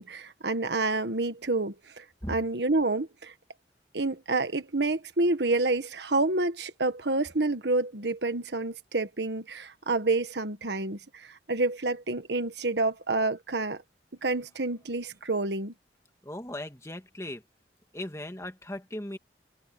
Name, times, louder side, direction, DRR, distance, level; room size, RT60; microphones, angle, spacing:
voice 1, 0.0-3.3 3.9-13.8 14.2-15.7, right 2 dB, 75° right, 1.5 m, -28 dB
voice 2, 16.2-17.4 17.9-19.2, left 1 dB, 15° left, 2.0 m, -37 dB
head